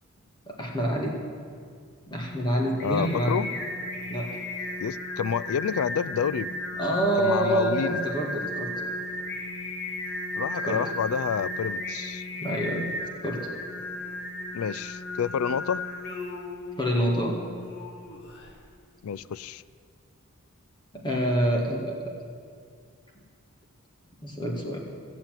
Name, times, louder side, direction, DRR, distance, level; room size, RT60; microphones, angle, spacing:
voice 1, 0.5-1.1 2.1-3.4 4.1-4.3 6.8-8.7 10.6-10.8 12.4-12.8 13.2-13.4 16.8-17.3 20.9-22.1 24.2-24.8, right 1 dB, 20° left, 0 dB, 2.1 m, -26 dB
Singing, 2.3-18.5, left 1 dB, 55° left, 2.1 m, -35 dB
voice 2, 2.8-3.5 4.8-6.6 7.2-8.0 10.3-12.2 14.5-15.8 19.0-19.6, left 7 dB, 75° left, 19 dB, 0.4 m, -29 dB
16.0 x 7.2 x 9.2 m, 2.2 s
head